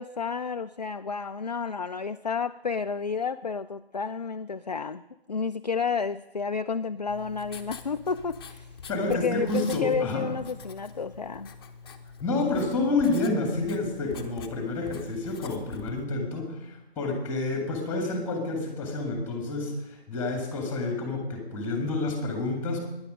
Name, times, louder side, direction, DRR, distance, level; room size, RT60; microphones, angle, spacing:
voice 1, 0.0-5.0 5.3-8.7 9.1-11.5, left 5 dB, 45° left, 10 dB, 0.4 m, -31 dB
Writing, 7.1-16.0, left 5 dB, 25° left, 1.0 m, -45 dB
voice 2, 8.9-10.3 12.2-22.8, left 2 dB, 5° left, 3 dB, 2.1 m, -29 dB
19.0 x 10.5 x 5.3 m, 0.99 s
figure-of-eight pair, 150°, 32 cm